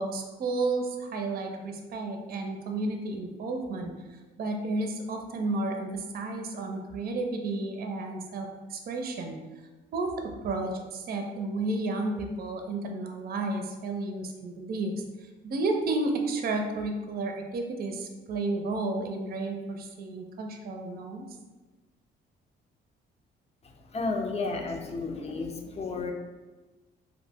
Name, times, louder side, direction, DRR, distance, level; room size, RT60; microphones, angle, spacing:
voice 1, 0.0-9.4 9.9-14.9 15.4-21.3, right 2 dB, 50° right, 4 dB, 0.4 m, -32 dB
voice 2, 23.6-26.1, left 3 dB, 30° left, 3 dB, 0.5 m, -32 dB
2.7 x 2.0 x 3.4 m, 1.2 s
cardioid pair, 90°, 20 cm